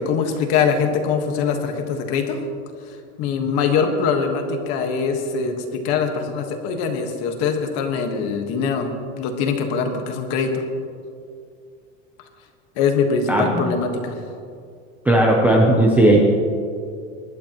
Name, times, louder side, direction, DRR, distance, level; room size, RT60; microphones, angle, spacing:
voice 1, 0.0-2.4 2.9-10.6 12.8-14.2, left 5 dB, 40° left, 5 dB, 1.4 m, -23 dB
voice 2, 13.3-13.6 15.1-16.2, right 1 dB, 5° right, -2 dB, 0.5 m, -15 dB
24.0 x 11.5 x 3.0 m, 2.4 s
supercardioid pair, 170°, 38 cm